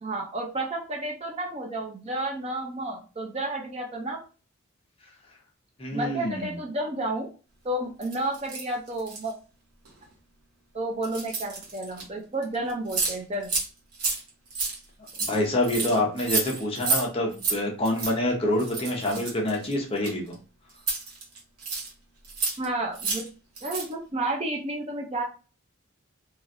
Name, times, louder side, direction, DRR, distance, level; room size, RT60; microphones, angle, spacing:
voice 1, 0.0-4.2 5.9-7.3 7.6-9.3 10.7-13.5 22.6-23.2 23.6-25.2, right 1 dB, 30° right, 1 dB, 0.4 m, -31 dB
voice 2, 5.8-6.5 15.3-20.4, left 1 dB, 25° left, -1 dB, 0.7 m, -26 dB
sound 1, 8.0-9.3 9.8-10.0 11.0-12.0 12.4-12.5 12.7-13.2 13.4-13.7 13.9-17.0 17.3-17.6 17.8-18.1 18.6-20.3 20.8-21.9 22.2-22.6 22.9-23.3 23.6-23.9, right 4 dB, 85° right, 1.0 m, -30 dB
3.1 x 2.4 x 2.6 m, 0.35 s
head